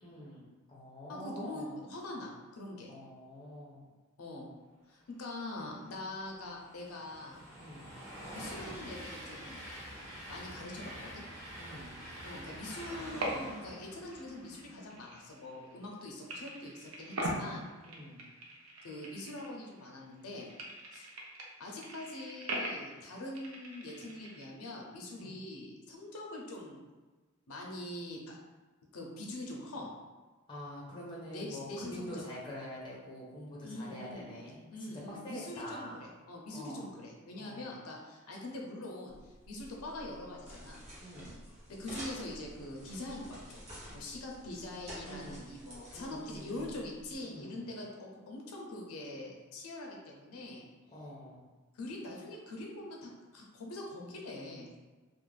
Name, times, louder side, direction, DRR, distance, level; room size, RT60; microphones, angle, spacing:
voice 1, 0.0-1.8 2.9-3.8 7.5-7.9 11.6-12.0 17.8-18.2 25.2-25.3 30.5-36.0 36.5-36.9 37.4-37.8 41.0-41.3 45.0-45.5 45.9-46.7 47.2-47.7 50.9-51.4, equal, 20° left, -5 dB, 0.5 m, -46 dB
voice 2, 1.1-2.9 4.2-4.5 4.9-7.4 8.3-9.6 10.3-11.2 12.2-17.6 18.8-20.5 20.9-21.1 21.6-26.8 27.5-28.3 28.9-29.9 31.3-32.2 33.6-34.3 34.7-40.8 41.7-43.6 43.9-50.7 51.7-54.7, left 1 dB, 80° left, -1 dB, 0.5 m, -43 dB
Train, 5.6-15.1, equal, 15° right, 1.2 m, -47 dB
sound 1, 13.0-13.8 14.0-16.0 16.3-19.9 20.1-24.5, right 1 dB, 65° right, 0.5 m, -41 dB
sound 2, 39.1-47.2, equal, 30° right, 0.8 m, -50 dB
2.4 x 2.0 x 3.1 m, 1.3 s
head